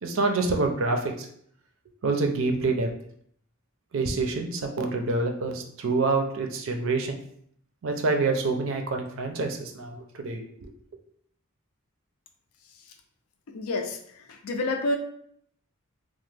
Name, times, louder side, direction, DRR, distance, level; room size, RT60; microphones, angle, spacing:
voice 1, 0.0-1.3 2.0-2.9 3.9-7.2 7.8-10.4, right 3 dB, 65° right, 4 dB, 0.5 m, -26 dB
voice 2, 13.5-15.0, left 2 dB, 85° left, 5 dB, 0.5 m, -29 dB
2.9 x 2.1 x 3.2 m, 0.65 s
head